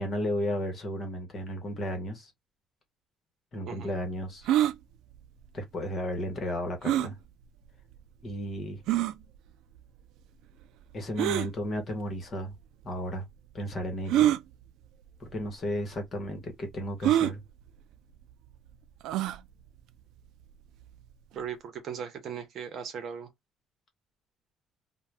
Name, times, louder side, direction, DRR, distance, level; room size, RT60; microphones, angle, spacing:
voice 1, 0.0-2.3 3.5-4.5 5.5-7.2 8.2-8.8 10.9-12.5 12.8-13.3 13.5-14.3 15.2-17.4, equal, 35° left, 1.0 m, -33 dB
sound 1, 4.4-4.7 6.8-7.1 7.9-8.0 8.9-9.1 11.2-11.5 12.5-12.6 14.1-14.4 15.3-15.5 15.7-15.8 17.0-17.3 19.0-19.4, right 12 dB, 80° right, 0.3 m, -24 dB
voice 2, 21.3-23.3, right 7 dB, 50° right, 0.8 m, -38 dB
2.4 x 2.2 x 3.2 m
cardioid pair, 155°, 0 cm